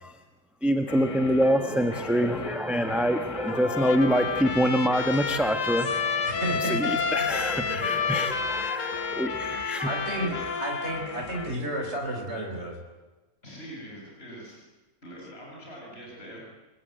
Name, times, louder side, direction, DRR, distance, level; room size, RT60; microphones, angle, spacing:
voice 1, 0.6-6.3 6.7-9.9, equal, ahead, 1.4 m, -25 dB
sound 1, 0.9-11.6, left 3 dB, 25° left, 0.9 m, -39 dB
Trumpet, 3.5-11.1, left 5 dB, 60° left, 1.7 m, -30 dB
voice 2, 6.3-7.0 7.7-7.9 9.8-12.8, right 1 dB, 50° right, 5.0 m, -32 dB
voice 3, 10.1-10.5 13.4-14.6 15.0-16.4, equal, 45° left, 7.9 m, -43 dB
29.0 x 21.0 x 9.2 m
omnidirectional pair, 1.5 m